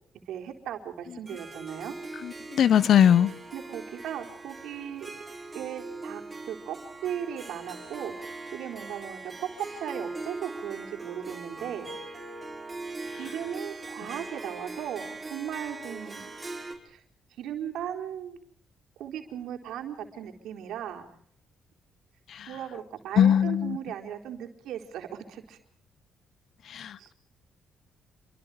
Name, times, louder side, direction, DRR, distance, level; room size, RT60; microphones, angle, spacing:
voice 1, 0.3-1.9 3.5-5.1 5.5-6.2 6.5-6.8 7.0-9.5 9.8-11.9 13.2-16.3 16.9-17.0 17.4-18.4 19.0-21.1 22.5-25.6 27.0-27.1, right 9 dB, 80° right, 4.2 m, -37 dB
Harp, 1.3-16.7, right 3 dB, 20° right, 5.7 m, -41 dB
voice 2, 2.5-3.3 23.2-23.8 26.7-27.1, left 9 dB, 65° left, 1.0 m, -20 dB
28.0 x 24.0 x 5.1 m
cardioid pair, 90°, 0 cm